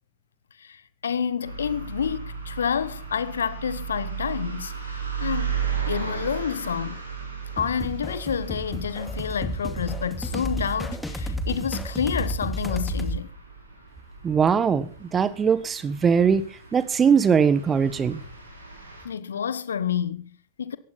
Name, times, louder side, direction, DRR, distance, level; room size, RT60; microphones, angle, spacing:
voice 1, 0.6-5.6 5.9-7.0 7.6-13.3 19.0-20.8, left 7 dB, 70° left, 1.2 m, -29 dB
sound 1, 1.4-19.1, right 7 dB, 80° right, 5.5 m, -36 dB
sound 2, 7.6-13.2, equal, 5° left, 2.4 m, -31 dB
voice 2, 14.2-16.4 16.7-18.2, right 6 dB, 20° right, 1.4 m, -21 dB
17.5 x 15.0 x 4.2 m
figure-of-eight pair, 90°, 0 cm